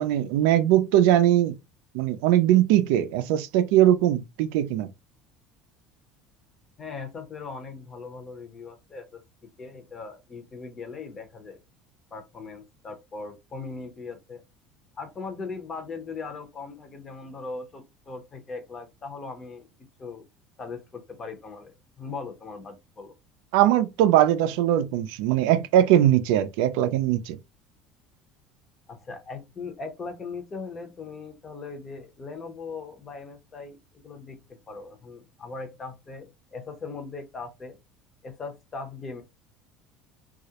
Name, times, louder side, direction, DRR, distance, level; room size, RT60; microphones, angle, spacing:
voice 1, 0.0-1.6 1.9-4.9 23.5-27.4, right 12 dB, 80° right, 0.3 m, -21 dB
voice 2, 6.8-9.2 9.6-11.6 12.1-14.4 15.0-19.7 20.0-20.3 20.6-23.1 28.9-34.4 34.7-37.8 38.2-39.2, left 4 dB, 25° left, 0.6 m, -39 dB
2.3 x 2.0 x 2.8 m
cardioid pair, 150°, 0 cm